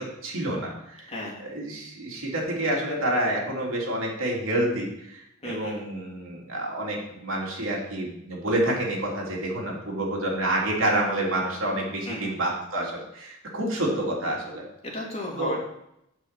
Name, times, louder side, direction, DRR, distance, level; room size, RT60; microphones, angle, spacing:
voice 1, 0.2-1.1 1.4-4.9 5.1-14.6 15.4-15.6, right 1 dB, 75° right, -2 dB, 3.1 m, -28 dB
voice 2, 1.1-1.4 5.4-5.9 12.0-12.4 14.8-15.6, left 1 dB, 30° left, -4 dB, 3.1 m, -34 dB
8.2 x 6.0 x 7.6 m, 0.80 s
head